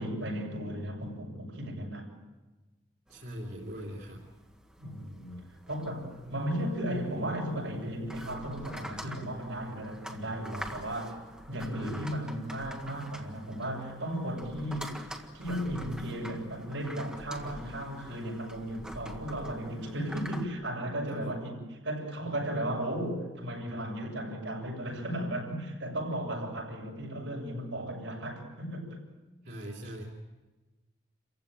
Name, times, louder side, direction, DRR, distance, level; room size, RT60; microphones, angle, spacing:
voice 1, 0.0-2.1 4.8-11.2 11.5-15.0 15.3-29.0, right 1 dB, 80° right, 7.4 m, -35 dB
sound 1, 3.1-20.5, equal, 5° right, 1.6 m, -47 dB
voice 2, 3.1-4.2 6.1-6.3 21.2-21.3 21.9-22.0 29.4-30.0, equal, 55° right, 3.4 m, -41 dB
28.5 x 15.5 x 9.1 m
head